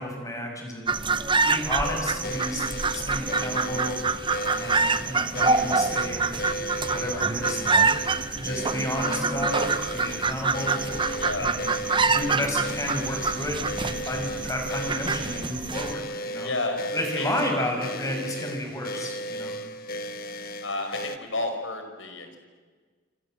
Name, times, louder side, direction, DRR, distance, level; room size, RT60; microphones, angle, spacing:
voice 1, 0.0-2.6 2.9-4.0 4.6-6.4 6.8-7.6 8.3-10.8 11.4-16.5 16.9-19.5, left 1 dB, 15° left, 2 dB, 6.6 m, -32 dB
sound 1, 0.9-15.9, right 4 dB, 25° right, 0.9 m, -26 dB
sound 2, 1.8-21.2, equal, 50° left, 1.3 m, -35 dB
sound 3, 1.8-4.5 4.9-6.0 6.5-6.9 7.5-7.9 8.3-13.4 13.7-14.2 14.5-16.8 17.5-18.9, right 2 dB, ahead, 5.0 m, -44 dB
voice 2, 11.2-11.5 16.4-16.8 17.2-17.3 20.6-22.4, left 2 dB, 85° left, 6 dB, 5.3 m, -31 dB
27.0 x 27.0 x 7.9 m, 1.5 s
head